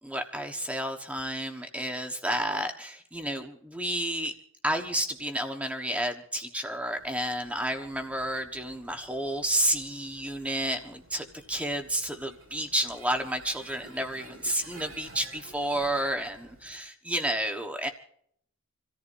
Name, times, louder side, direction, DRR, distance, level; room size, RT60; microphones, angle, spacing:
voice 1, 0.0-4.3 4.6-17.9, right 1 dB, 5° right, 4 dB, 1.2 m, -31 dB
sound 1, 6.9-16.8, right 2 dB, 90° right, 7.5 m, -52 dB
27.5 x 14.0 x 2.7 m, 0.65 s
head